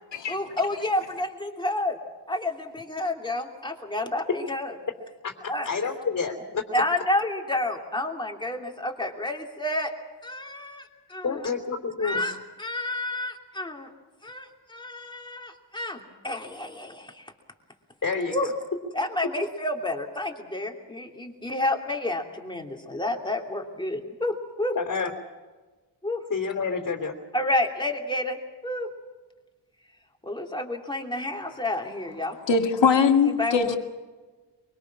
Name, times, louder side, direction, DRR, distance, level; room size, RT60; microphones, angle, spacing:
voice 1, 0.3-2.0 2.3-4.7 5.5-5.7 6.7-9.9 10.2-11.5 12.0-13.9 14.2-17.3 18.3-18.5 18.9-24.8 26.0-26.2 27.3-28.4 28.6-28.9 30.2-32.4 33.2-33.8, left 1 dB, 10° left, 1 dB, 2.9 m, -30 dB
voice 2, 5.6-6.6 11.2-12.2 18.0-18.3 24.7-25.1 26.3-27.2, left 5 dB, 40° left, 2 dB, 3.2 m, -28 dB
voice 3, 32.5-33.8, left 5 dB, 80° left, 4 dB, 2.3 m, -21 dB
24.5 x 24.0 x 6.1 m, 1.3 s
wide cardioid pair, 145°, 43 cm